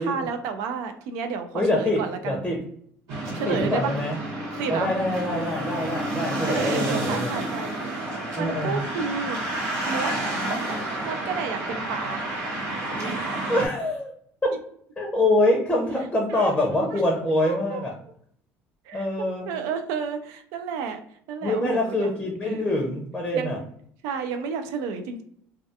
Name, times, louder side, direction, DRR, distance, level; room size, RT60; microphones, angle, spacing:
voice 1, 0.0-2.3 3.3-4.0 4.6-4.9 6.5-7.8 8.4-9.4 9.9-10.1 11.0-12.3 13.0-13.5 16.3-16.5 16.9-17.0 17.4-17.8 18.9-19.1 19.5-21.0 21.3-22.1 22.4-23.0 23.3-23.6 24.0-25.2, right 6 dB, 90° right, 7 dB, 0.3 m, -31 dB
voice 2, 1.5-2.6 3.3-4.2 4.7-7.3 8.4-8.8 13.5-14.1 15.0-17.9 18.9-19.5 21.4-23.6, left 1 dB, 10° left, 0 dB, 0.5 m, -25 dB
sound 1, 3.1-13.7, right 1 dB, 65° right, 1.0 m, -30 dB
2.3 x 2.3 x 2.6 m, 0.65 s
cardioid pair, 135°, 6 cm